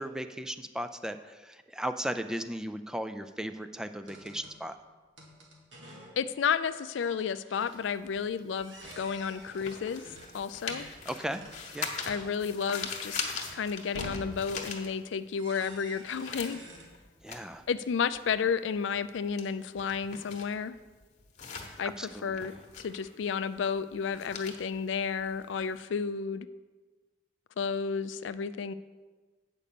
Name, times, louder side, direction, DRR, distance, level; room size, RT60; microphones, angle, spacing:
voice 1, 0.0-4.7 11.1-11.4 11.7-11.9 17.2-17.6 22.0-22.4, equal, 5° right, 9 dB, 0.3 m, -36 dB
sound 1, 4.0-4.6 5.2-6.3 6.6-6.7 7.0-8.0 8.5-10.9 11.3-16.9, equal, 85° right, 1.8 m, -49 dB
voice 2, 6.2-10.0 10.3-10.9 12.0-13.2 13.5-16.6 17.7-20.8 21.8-26.5 27.6-28.7, left 6 dB, 75° left, 13 dB, 0.4 m, -32 dB
sound 2, 7.6-15.4 15.7-25.8, left 5 dB, 40° left, 1.0 m, -41 dB
8.5 x 5.2 x 6.8 m, 1.3 s
head